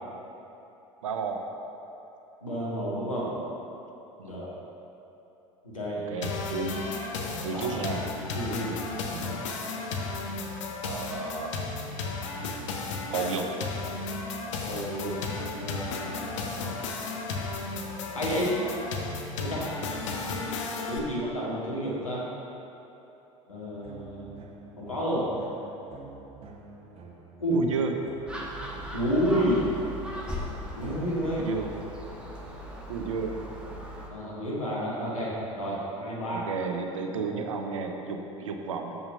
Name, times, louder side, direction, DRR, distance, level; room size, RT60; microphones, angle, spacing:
voice 1, 1.0-1.4 3.2-3.4 4.2-4.4 5.9-6.7 7.4-8.0 9.1-9.4 10.8-11.5 13.1-13.5 27.5-27.9 31.4-31.7 32.9-33.3 36.3-39.0, right 5 dB, 75° right, 4 dB, 0.7 m, -32 dB
voice 2, 2.4-3.3 4.2-4.6 5.6-6.2 7.5-7.7 8.3-8.8 14.6-15.2 15.6-16.2 18.1-18.5 19.4-19.7 20.8-22.2 23.5-24.3 24.8-25.3 27.4-27.6 28.9-29.6 30.7-31.6 34.1-36.5, equal, 90° left, -6 dB, 1.8 m, -30 dB
sound 1, 6.2-21.0, left 3 dB, 65° left, 0.8 m, -34 dB
sound 2, 23.5-29.5, right 3 dB, 35° right, 1.0 m, -48 dB
Gull seagull, 28.3-34.1, equal, 5° right, 1.2 m, -38 dB
6.5 x 5.9 x 5.4 m, 3.0 s
figure-of-eight pair, 75°, 17 cm